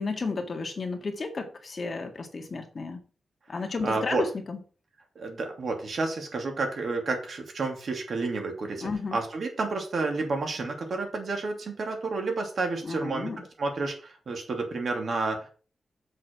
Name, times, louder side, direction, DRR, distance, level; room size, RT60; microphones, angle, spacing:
voice 1, 0.0-3.0 3.5-4.6 8.8-9.2 12.8-13.4, left 4 dB, 40° left, 4 dB, 1.8 m, -32 dB
voice 2, 3.8-4.3 5.1-15.5, right 3 dB, 55° right, 3 dB, 2.8 m, -30 dB
7.8 x 6.4 x 6.0 m, 0.38 s
wide cardioid pair, 135°, 0 cm